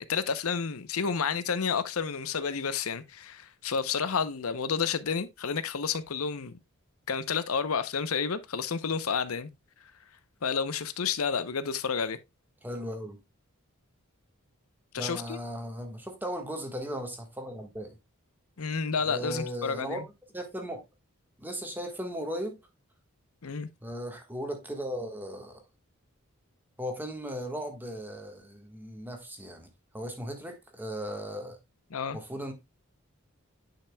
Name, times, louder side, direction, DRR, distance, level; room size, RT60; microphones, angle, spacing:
voice 1, 0.1-6.5 7.1-9.5 10.4-12.2 14.9-15.4 18.6-20.0 23.4-23.7 31.9-32.2, left 6 dB, 75° left, 0.7 m, -30 dB
voice 2, 12.6-13.2 15.0-18.0 19.0-20.0 20.3-20.8 21.4-22.6 23.8-25.6 26.8-29.7 29.9-31.6 32.1-32.5, equal, 10° right, 1.4 m, -37 dB
10.0 x 5.8 x 2.2 m
head